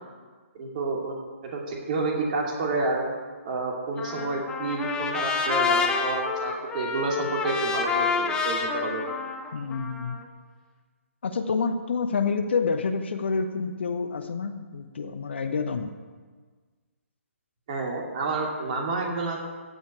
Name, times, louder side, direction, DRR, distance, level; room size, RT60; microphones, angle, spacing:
voice 1, 0.5-1.2 1.4-3.0 3.4-9.0 17.7-19.5, right 3 dB, 35° right, -1 dB, 2.7 m, -29 dB
Trumpet, 4.0-10.2, left 5 dB, 10° left, 0.9 m, -28 dB
voice 2, 9.5-10.2 11.2-15.9, left 5 dB, 50° left, 8 dB, 0.9 m, -28 dB
15.5 x 5.6 x 8.8 m, 1.5 s
figure-of-eight pair, 135°, 8 cm